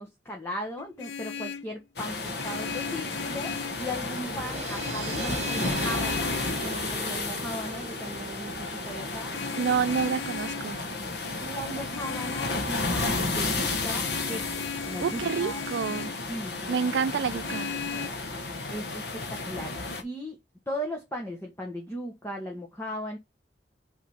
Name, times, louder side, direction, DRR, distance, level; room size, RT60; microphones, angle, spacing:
voice 1, 0.0-9.3 11.4-15.6 15.9-17.0 17.7-18.2 18.7-19.7 20.0-20.4 20.7-23.2, equal, 15° left, 1.4 m, -37 dB
Vehicle horn car horn honking, 0.8-1.7 2.4-3.9 4.7-6.7 9.3-10.7 11.9-12.6 14.0-16.2 17.4-18.1, left 7 dB, 85° left, 0.7 m, -37 dB
sound 1, 2.0-20.0, left 3 dB, 65° left, 1.4 m, -32 dB
sound 2, 3.9-11.1, right 6 dB, 35° right, 0.8 m, -41 dB
voice 2, 9.6-10.8 15.0-16.1 16.7-17.7, right 6 dB, 70° right, 0.3 m, -28 dB
6.0 x 3.8 x 5.6 m
head